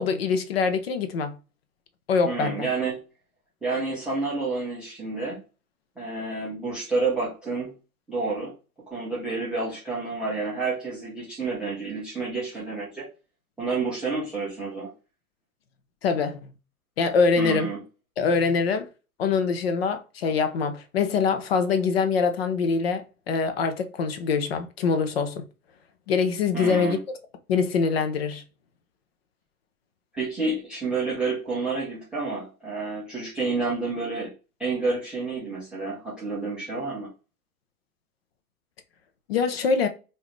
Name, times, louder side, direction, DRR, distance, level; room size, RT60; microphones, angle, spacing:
voice 1, 0.0-1.4 2.1-2.7 16.0-16.4 17.0-17.7 18.2-18.9 19.2-25.4 26.1-27.0 27.5-28.4 39.3-39.9, left 5 dB, 45° left, 0.6 m, -24 dB
voice 2, 2.2-3.0 3.6-5.4 6.0-7.7 8.1-8.5 8.9-13.1 13.6-14.9 17.4-17.8 26.5-27.0 30.1-34.3 34.6-37.1, right 3 dB, ahead, 0.4 m, -29 dB
4.4 x 2.7 x 3.5 m
figure-of-eight pair, 100°, 44 cm